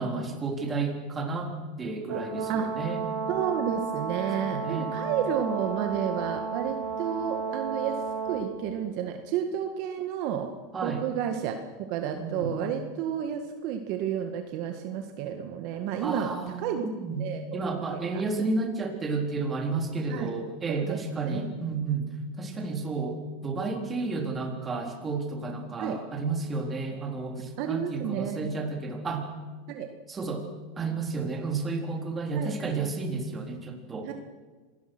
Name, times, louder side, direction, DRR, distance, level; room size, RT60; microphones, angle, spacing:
voice 1, 0.0-1.5 1.8-3.0 4.4-4.9 10.7-11.0 12.1-12.5 16.0-17.3 17.5-29.3 30.1-30.4 30.8-34.1, right 3 dB, 20° right, 2 dB, 3.8 m, -31 dB
Brass instrument, 2.1-8.5, right 5 dB, 80° right, 6.9 m, -33 dB
voice 2, 3.3-10.5 10.8-11.6 11.9-16.8 17.2-18.2 20.1-20.3 20.7-21.6 25.8-26.0 27.6-28.5 29.7-29.9 32.3-32.5 34.0-34.1, right 9 dB, 55° right, 5 dB, 1.8 m, -31 dB
26.0 x 18.5 x 6.2 m, 1.4 s
supercardioid pair, 130°, 0 cm